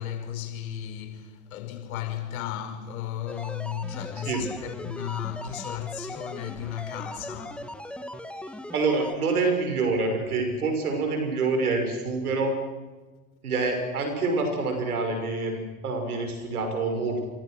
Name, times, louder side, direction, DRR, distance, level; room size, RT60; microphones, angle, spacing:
voice 1, 0.0-7.8 8.2-8.6, left 10 dB, 70° left, 5.6 m, -35 dB
sound 1, 3.3-9.2, left 1 dB, ahead, 2.1 m, -39 dB
voice 2, 8.7-12.6 13.4-17.2, right 3 dB, 80° right, 6.5 m, -26 dB
28.5 x 24.0 x 6.5 m
figure-of-eight pair, 75°, 44 cm